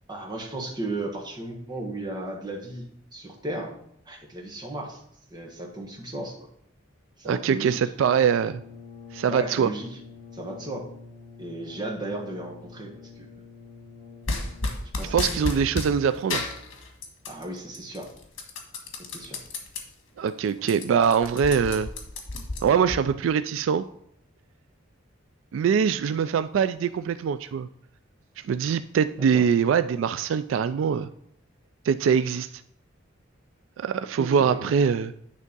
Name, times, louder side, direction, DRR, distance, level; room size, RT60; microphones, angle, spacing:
voice 1, 0.1-3.7 4.0-5.0 5.3-6.3 7.2-7.8 9.3-9.9 10.3-10.9 11.4-13.3 15.0-15.7 17.3-18.1 19.0-19.4 29.2-29.4 34.2-34.8, right 1 dB, 25° right, -1 dB, 1.6 m, -35 dB
voice 2, 7.2-8.6 9.1-9.7 15.1-16.5 20.2-21.9 22.6-23.8 25.5-27.7 28.4-31.1 31.8-32.5 33.8-35.1, right 7 dB, 80° right, 13 dB, 0.3 m, -23 dB
Brass instrument, 7.9-15.0, left 4 dB, 45° left, 3.1 m, -46 dB
sound 1, 14.3-15.9 16.3-17.4 17.7-19.8 20.2-20.3 20.6-23.0, left 3 dB, 80° left, 1.5 m, -32 dB
9.7 x 3.6 x 5.3 m, 0.70 s
head